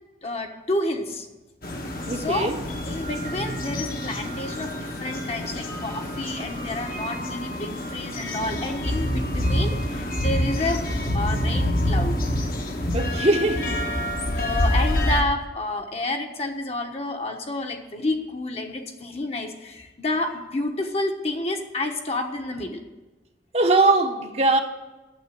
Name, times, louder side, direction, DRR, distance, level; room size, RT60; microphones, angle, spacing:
voice 1, 0.2-1.3 2.1-2.5 2.9-10.8 11.1-12.2 14.3-22.8, left 2 dB, 35° left, 3 dB, 1.2 m, -29 dB
sound 1, 1.6-15.2, left 1 dB, 55° left, 1.4 m, -27 dB
voice 2, 2.1-2.6 12.9-13.8 23.5-24.6, right 2 dB, 35° right, 4 dB, 1.0 m, -21 dB
9.2 x 7.5 x 9.1 m, 1.1 s
head